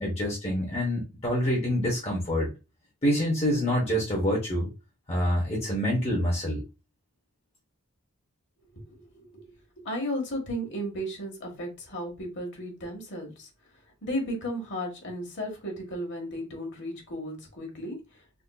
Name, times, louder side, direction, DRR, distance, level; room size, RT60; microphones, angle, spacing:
voice 1, 0.0-2.5 3.0-4.7 5.1-6.6, equal, 30° left, -3 dB, 0.8 m, -26 dB
voice 2, 8.9-9.4 9.8-13.5 14.0-18.0, equal, 55° left, 2 dB, 1.2 m, -34 dB
3.6 x 2.5 x 2.2 m, 0.28 s
head